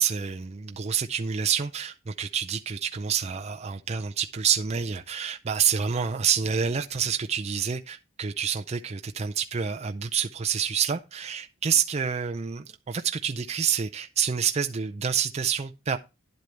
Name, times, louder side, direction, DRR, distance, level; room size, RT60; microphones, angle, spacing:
voice 1, 0.0-16.0, right 7 dB, 35° right, 0.5 m, -28 dB
10.5 x 8.0 x 3.3 m
head